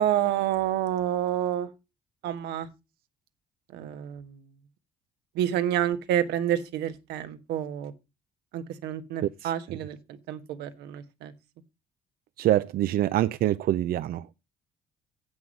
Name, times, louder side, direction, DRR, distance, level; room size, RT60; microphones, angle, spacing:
voice 1, 0.0-1.7 2.2-2.7 3.7-4.2 5.3-7.9 8.5-10.0 10.3-11.3, right 11 dB, 85° right, 1.4 m, -28 dB
voice 2, 9.2-9.5 12.4-14.3, right 13 dB, 60° right, 0.5 m, -25 dB
9.4 x 7.9 x 5.3 m
cardioid pair, 110°, 17 cm